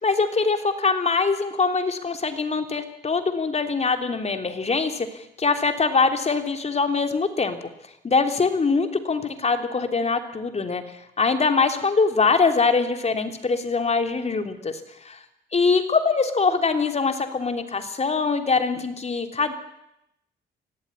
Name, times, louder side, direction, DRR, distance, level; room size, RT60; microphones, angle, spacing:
voice 1, 0.0-7.6 8.0-14.8 15.0-15.2 15.5-19.5, left 4 dB, 35° left, 7 dB, 3.3 m, -23 dB
24.5 x 17.0 x 9.9 m, 0.84 s
cardioid pair, 90°, 20 cm